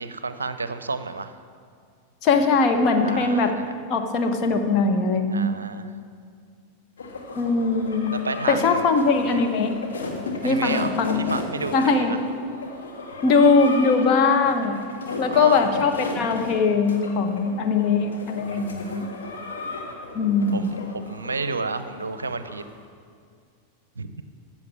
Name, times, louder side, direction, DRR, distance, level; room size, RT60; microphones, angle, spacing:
voice 1, 0.0-1.3 3.0-3.7 5.3-5.9 8.1-8.9 9.2-9.4 10.4-10.9 11.3-12.2 15.1-15.6 18.5-19.1 20.5-22.6 24.0-24.2, right 4 dB, 75° right, 12 dB, 0.6 m, -31 dB
voice 2, 2.2-3.5 3.9-5.5 7.3-8.1 8.5-9.7 10.4-11.2 11.7-12.1 13.2-14.8 15.2-19.0 20.1-20.7, left 4 dB, 35° left, 5 dB, 1.1 m, -21 dB
sound 1, 7.0-22.7, left 3 dB, 65° left, 1.8 m, -35 dB
14.0 x 7.4 x 7.1 m, 2.2 s
figure-of-eight pair, 90°, 0 cm